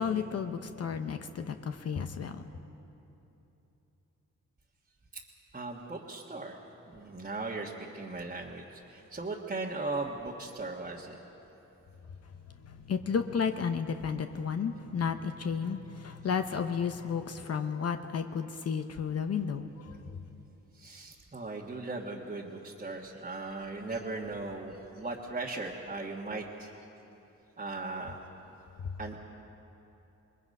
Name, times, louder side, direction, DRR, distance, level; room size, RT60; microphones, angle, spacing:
voice 1, 0.0-2.5 12.6-20.0, left 6 dB, 55° left, 7 dB, 0.9 m, -32 dB
voice 2, 5.5-6.6 6.9-11.2 20.7-26.7 27.6-28.2 29.0-29.2, right 3 dB, 25° right, -4 dB, 1.6 m, -38 dB
27.5 x 21.0 x 5.5 m, 3.0 s
cardioid pair, 105°, 30 cm